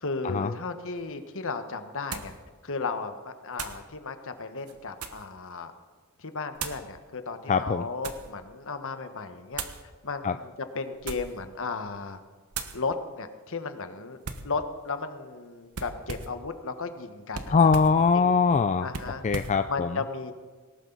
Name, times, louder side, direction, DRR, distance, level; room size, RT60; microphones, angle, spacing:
voice 1, 0.0-2.3 2.6-5.7 6.2-9.6 10.0-12.2 12.7-14.2 14.4-17.7 18.1-18.5 18.8-19.2 19.7-20.3, left 4 dB, 65° left, 8 dB, 1.4 m, -35 dB
sound 1, 1.0-1.1 2.1-2.4 3.5-3.9 4.6-5.3 6.5-6.9 7.6-8.3 9.5-9.8 10.9-11.4 11.8-12.1 12.5-12.8 14.2-14.5 15.7-16.4 17.3-18.0 18.9-19.6, right 5 dB, 85° right, 1.3 m, -38 dB
voice 2, 7.5-7.9 10.2-10.3 17.5-18.9 19.2-20.0, left 5 dB, 35° left, 9 dB, 0.4 m, -22 dB
19.5 x 18.0 x 4.0 m, 1.4 s
head